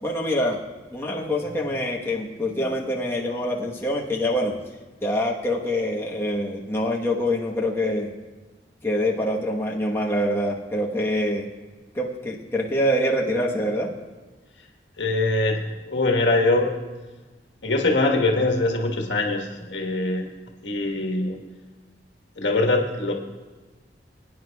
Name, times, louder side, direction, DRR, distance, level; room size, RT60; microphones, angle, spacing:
voice 1, 0.0-0.6 0.9-4.5 5.0-8.1 8.8-11.5 11.9-13.9, left 1 dB, 15° left, -3 dB, 1.2 m, -25 dB
voice 2, 15.0-16.8 17.6-20.3 20.6-21.4 22.4-23.1, left 2 dB, 85° left, 0 dB, 1.4 m, -23 dB
22.0 x 9.5 x 2.3 m, 1.3 s
head